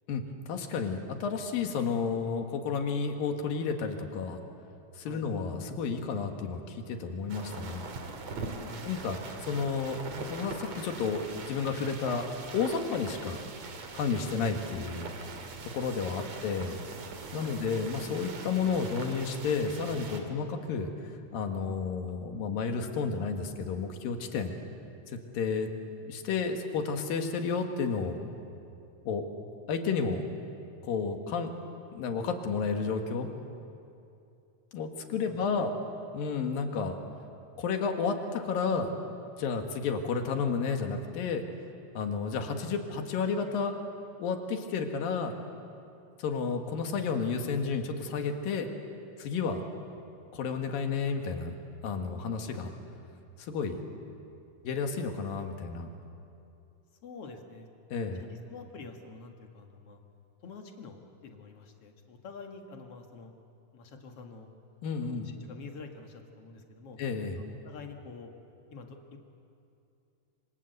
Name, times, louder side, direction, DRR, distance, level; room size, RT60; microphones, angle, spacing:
voice 1, 0.5-4.4 5.0-7.9 8.8-12.3 12.5-13.4 13.9-15.1 15.7-16.8 17.3-20.9 21.3-24.5 25.1-25.7 26.0-28.2 29.1-29.3 29.7-30.2 30.8-31.5 31.9-33.3 34.7-35.7 36.1-37.0 37.6-38.9 39.4-41.4 42.0-43.8 44.2-45.4 46.2-48.7 49.2-49.6 50.3-51.5 51.8-52.7 53.4-53.8 54.7-55.9 57.9-58.2 64.8-65.3 67.0-67.4, left 5 dB, 80° left, 5 dB, 3.6 m, -31 dB
sound 1, 7.3-20.2, right 4 dB, 50° right, 3.1 m, -42 dB
voice 2, 15.9-16.3 17.3-17.6 35.2-35.7 57.0-57.7 58.2-60.0 60.4-63.3 63.7-64.5 65.0-67.0 67.4-68.3 68.7-69.2, left 4 dB, 50° left, 4 dB, 2.6 m, -47 dB
26.5 x 25.5 x 8.0 m, 2.6 s
omnidirectional pair, 4.0 m